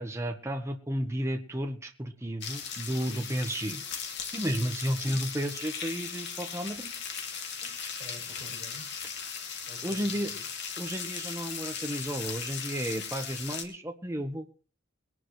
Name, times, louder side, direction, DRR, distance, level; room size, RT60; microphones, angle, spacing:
voice 1, 0.0-3.8 4.3-6.9 9.8-10.3 10.8-14.4, equal, 15° right, 4 dB, 1.3 m, -32 dB
sound 1, 2.4-13.6, left 6 dB, 55° left, 2.8 m, -38 dB
voice 2, 7.6-9.1 9.7-10.4, equal, 35° left, -1 dB, 8.0 m, -49 dB
22.0 x 11.0 x 3.3 m, 0.37 s
head